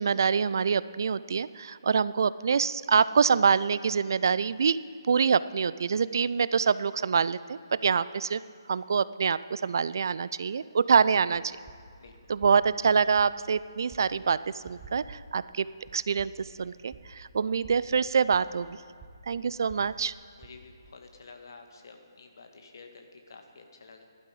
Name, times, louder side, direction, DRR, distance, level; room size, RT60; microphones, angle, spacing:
voice 1, 0.0-4.8 5.1-8.4 8.7-11.6 12.3-15.7 15.9-18.8 19.3-20.1, right 6 dB, 50° right, 17 dB, 0.3 m, -25 dB
sound 1, 11.3-21.0, right 3 dB, 10° right, 1.2 m, -53 dB
voice 2, 20.4-24.0, left 4 dB, 55° left, 4 dB, 1.7 m, -50 dB
15.5 x 11.5 x 5.0 m, 2.2 s
figure-of-eight pair, 140°, 2 cm